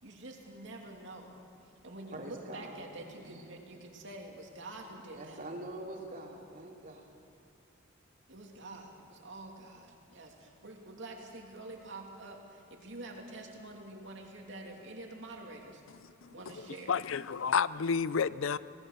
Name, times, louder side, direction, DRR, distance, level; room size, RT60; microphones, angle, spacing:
voice 1, 0.0-5.4 8.3-15.8 16.3-16.9, right 2 dB, 60° right, 3.0 m, -47 dB
voice 2, 2.1-3.5 5.1-7.1, right 1 dB, 40° right, 3.2 m, -45 dB
voice 3, 16.2-16.6 16.9-18.6, left 6 dB, 75° left, 0.5 m, -30 dB
27.0 x 18.5 x 6.8 m
head